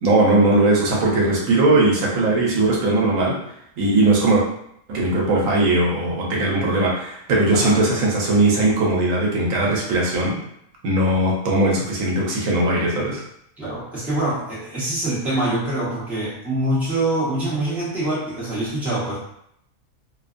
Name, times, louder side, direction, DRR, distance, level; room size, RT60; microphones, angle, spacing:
voice 1, 0.0-3.4 3.8-4.4 4.9-10.4 10.8-13.2, right 2 dB, 80° right, -3 dB, 1.1 m, -19 dB
voice 2, 13.6-19.2, right 1 dB, ahead, -10 dB, 0.9 m, -24 dB
2.6 x 2.2 x 2.5 m, 0.73 s
omnidirectional pair, 1.4 m